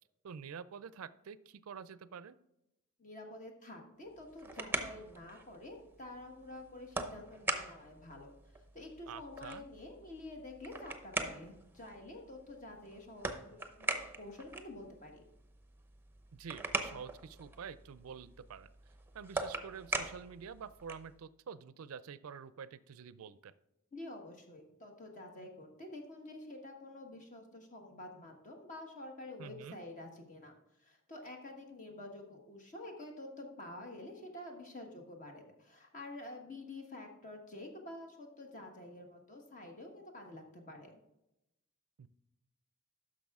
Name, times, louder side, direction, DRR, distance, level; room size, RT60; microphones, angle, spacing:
voice 1, 0.2-2.4 9.1-9.7 16.3-18.7 19.1-23.5 29.4-29.8 42.0-42.1, right 6 dB, 75° right, 16 dB, 0.4 m, -48 dB
voice 2, 3.0-8.3 8.7-15.2 23.9-41.0, left 2 dB, 35° left, 2 dB, 1.3 m, -49 dB
sound 1, 4.1-21.2, right 3 dB, 10° right, 0.7 m, -42 dB
10.5 x 6.4 x 3.6 m, 0.90 s
head